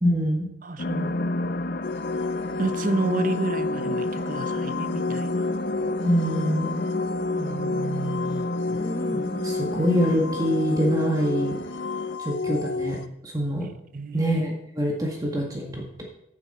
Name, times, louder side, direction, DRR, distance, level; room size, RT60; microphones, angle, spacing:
voice 1, 0.0-0.5 6.0-6.8 9.1-11.5 12.2-13.0 13.2-13.7 14.1-16.0, equal, 20° right, -1 dB, 1.9 m, -25 dB
voice 2, 0.6-1.2 2.6-5.5 7.4-8.5 13.9-14.3, right 3 dB, 50° right, 11 dB, 0.8 m, -31 dB
sound 1, 0.8-12.2, left 2 dB, 55° left, 0.6 m, -31 dB
sound 2, 1.8-13.1, left 3 dB, 85° left, 0.7 m, -31 dB
sound 3, 5.1-7.9 8.3-9.8, left 1 dB, 20° left, 1.2 m, -37 dB
15.5 x 8.9 x 4.4 m, 0.78 s
head